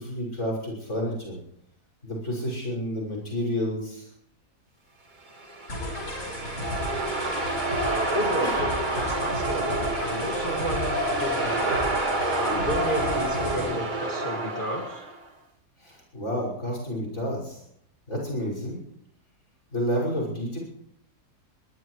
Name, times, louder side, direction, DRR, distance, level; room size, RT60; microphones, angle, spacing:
voice 1, 0.0-1.4 2.0-4.1 8.4-8.7 15.8-17.6 18.1-18.8 19.7-20.6, equal, 50° left, -1 dB, 6.4 m, -30 dB
sound 1, 5.3-15.2, right 2 dB, 30° right, 1.9 m, -28 dB
sound 2, 5.7-13.7, left 2 dB, 70° left, 5.8 m, -34 dB
voice 2, 7.8-11.8 12.3-15.0, equal, 30° left, -1 dB, 2.4 m, -32 dB
21.5 x 20.5 x 3.3 m, 0.71 s
omnidirectional pair, 1.7 m